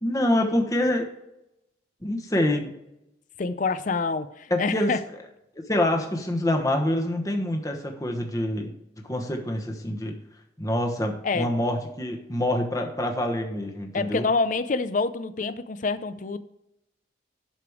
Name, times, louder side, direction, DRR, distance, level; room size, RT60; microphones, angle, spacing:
voice 1, 0.0-1.1 2.0-2.7 4.5-4.9 5.7-8.7 9.0-10.1 10.6-14.3, left 1 dB, 20° left, 1.1 m, -26 dB
voice 2, 3.4-5.0 11.2-11.5 13.9-16.4, left 4 dB, 40° left, 0.5 m, -26 dB
11.5 x 5.1 x 4.9 m
head